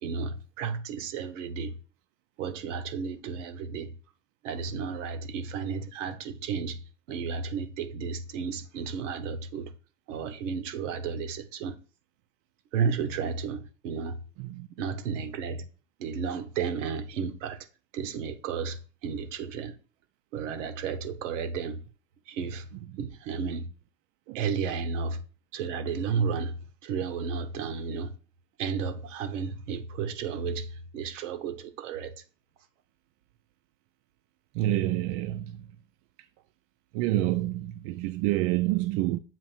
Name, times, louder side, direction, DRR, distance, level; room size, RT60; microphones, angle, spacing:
voice 1, 0.0-1.7 2.4-3.9 4.4-6.8 7.1-9.7 10.1-11.8 12.7-14.2 14.8-15.6 16.0-17.7 17.9-19.8 20.3-21.8 22.3-22.7 23.0-23.7 24.3-25.2 25.5-26.6 26.8-28.1 28.6-32.2, right 6 dB, 80° right, 0.9 m, -33 dB
voice 2, 34.5-35.7 36.9-39.2, right 15 dB, 65° right, 0.5 m, -28 dB
7.5 x 2.6 x 5.5 m
hypercardioid pair, 90°, 37 cm